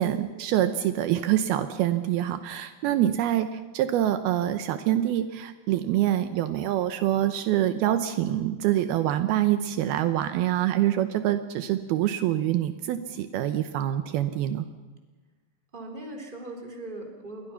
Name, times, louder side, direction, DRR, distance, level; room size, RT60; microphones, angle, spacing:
voice 1, 0.0-14.7, right 12 dB, 80° right, 10 dB, 2.7 m, -25 dB
voice 2, 15.7-17.5, right 1 dB, 15° right, 2 dB, 3.4 m, -39 dB
29.0 x 22.5 x 5.8 m, 1.3 s
omnidirectional pair, 4.6 m